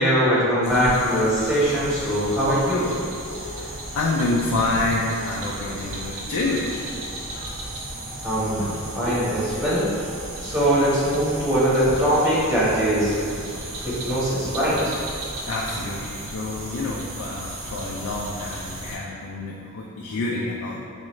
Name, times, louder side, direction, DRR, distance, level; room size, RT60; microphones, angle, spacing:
voice 1, 0.0-2.9 8.2-8.7 9.0-9.9 10.4-13.5 13.8-14.8, equal, 10° right, -11 dB, 1.2 m, -21 dB
sound 1, 0.6-19.0, right 1 dB, 65° right, 0.7 m, -35 dB
voice 2, 3.3-6.7 6.9-7.1 7.6-7.8 8.3-8.4 15.5-20.9, left 2 dB, 75° left, -3 dB, 0.4 m, -28 dB
5.0 x 2.4 x 3.1 m, 2.5 s
head